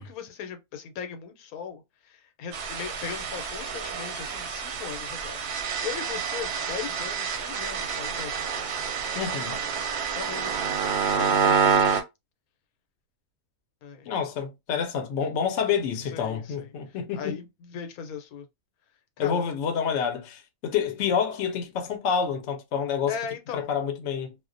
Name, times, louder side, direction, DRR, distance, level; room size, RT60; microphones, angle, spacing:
voice 1, 0.0-8.4 10.2-11.9 13.8-14.1 16.1-18.5 19.2-19.5 23.1-23.7, left 7 dB, 85° left, 1.1 m, -38 dB
sound 1, 2.5-12.0, right 6 dB, 60° right, 0.7 m, -28 dB
voice 2, 9.1-9.6 14.1-17.4 19.2-23.2 23.5-24.3, left 7 dB, 65° left, 0.8 m, -28 dB
2.3 x 2.1 x 2.5 m
omnidirectional pair, 1.5 m